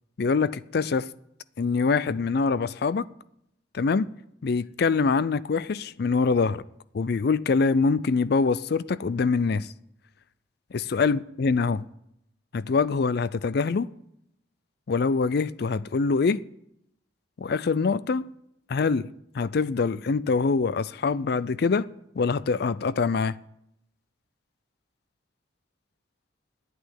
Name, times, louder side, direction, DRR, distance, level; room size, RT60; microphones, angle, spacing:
voice 1, 0.2-1.1 1.6-3.1 3.7-4.1 4.4-6.6 6.9-9.7 10.7-11.9 12.5-13.9 14.9-16.4 17.4-18.3 18.7-21.9 22.2-23.4, left 4 dB, 55° left, 0.4 m, -24 dB
9.3 x 8.5 x 9.7 m
head